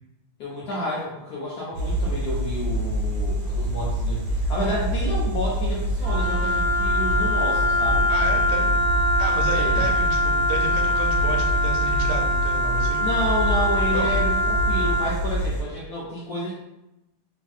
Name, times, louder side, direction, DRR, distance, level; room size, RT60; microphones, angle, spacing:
voice 1, 0.4-8.1 9.5-9.9 13.0-16.5, left 1 dB, 80° left, -7 dB, 0.8 m, -30 dB
sound 1, 1.7-15.6, right 1 dB, 75° right, 0.8 m, -26 dB
Wind instrument woodwind instrument, 6.0-15.1, left 1 dB, 35° left, 0.7 m, -23 dB
voice 2, 8.1-8.7 9.2-13.0 13.9-14.1, right 4 dB, 90° right, 1 dB, 1.5 m, -32 dB
3.3 x 2.6 x 2.3 m, 0.93 s
omnidirectional pair, 2.3 m